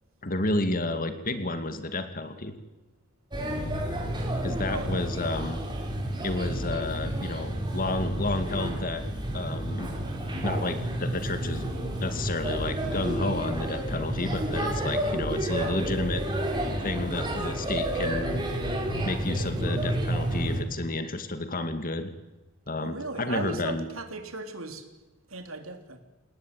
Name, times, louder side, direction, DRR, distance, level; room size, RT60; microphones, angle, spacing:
voice 1, 0.2-2.6 4.4-5.6 6.2-9.0 9.3-9.9 10.4-11.7 12.0-16.2 16.8-18.3 19.1-22.1 22.7-23.9, left 2 dB, 45° left, 9 dB, 2.2 m, -31 dB
Male speech man speaking / Child speech kid speaking / Chatter, 3.3-20.6, right 1 dB, 20° right, 5.3 m, -30 dB
voice 2, 22.8-24.8 25.3-26.0, right 2 dB, 75° right, 6 dB, 3.9 m, -36 dB
28.0 x 19.0 x 9.3 m, 1.1 s
head